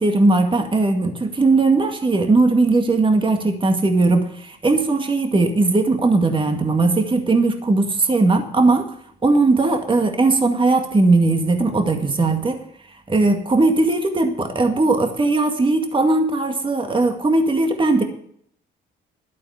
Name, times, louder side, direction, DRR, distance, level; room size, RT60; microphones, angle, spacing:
voice 1, 0.0-9.0 9.2-12.6 13.1-18.0, right 3 dB, 25° right, 5 dB, 2.1 m, -18 dB
12.0 x 8.6 x 6.6 m, 0.64 s
cardioid pair, 90°, 20 cm